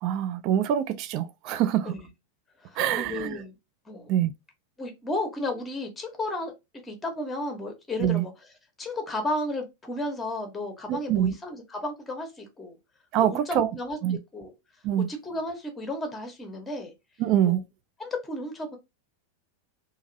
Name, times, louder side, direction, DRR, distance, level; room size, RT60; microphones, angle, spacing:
voice 1, 0.0-1.9 2.8-3.3 4.1-4.3 8.0-8.2 10.9-11.3 13.1-13.7 14.0-14.2 14.8-15.1 17.2-17.6, right 11 dB, 40° right, 0.3 m, -25 dB
voice 2, 2.6-3.6 3.9-4.1 4.8-6.5 6.8-8.3 8.8-12.8 13.2-14.5 15.1-16.9 17.4-17.6 18.0-18.8, left 1 dB, 10° left, 0.8 m, -33 dB
2.8 x 2.5 x 2.5 m
figure-of-eight pair, 90°, 0 cm